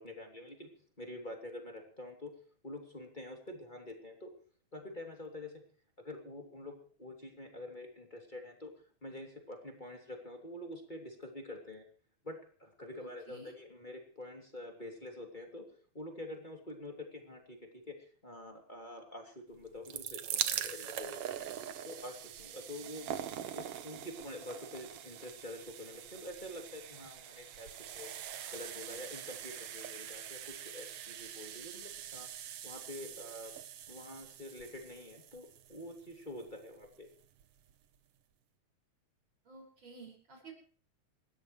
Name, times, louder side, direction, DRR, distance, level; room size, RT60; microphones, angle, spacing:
voice 1, 0.0-2.3 2.6-4.3 4.7-5.6 6.0-11.9 12.2-21.5 21.8-23.1 23.5-28.1 28.5-32.3 32.6-33.6 33.9-37.1, left 1 dB, 15° left, 2 dB, 2.7 m, -47 dB
voice 2, 13.0-13.5 39.4-40.5, right 3 dB, 40° right, 1 dB, 6.4 m, -52 dB
sound 1, 19.6-36.6 37.4-37.5 37.7-37.8, right 10 dB, 60° right, 1.8 m, -43 dB
28.0 x 13.5 x 3.2 m, 0.43 s
omnidirectional pair, 3.4 m